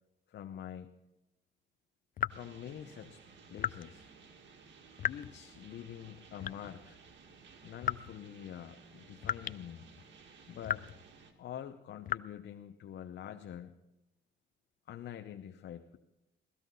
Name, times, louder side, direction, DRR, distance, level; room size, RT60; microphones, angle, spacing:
voice 1, 0.3-0.9 2.3-3.2 3.5-4.1 5.1-7.0 7.6-9.9 10.5-10.9 11.4-13.8 14.9-16.0, left 10 dB, 60° left, 7 dB, 0.8 m, -46 dB
sound 1, 2.2-2.5 3.6-3.9 5.0-5.4 6.4-6.8 7.8-8.2 9.2-9.6 10.0-10.1 10.6-11.0 12.1-12.2, left 10 dB, 45° left, 0.4 m, -35 dB
sound 2, 2.3-11.3, right 5 dB, 65° right, 1.9 m, -57 dB
16.5 x 13.5 x 4.0 m, 0.91 s
cardioid pair, 90°, 20 cm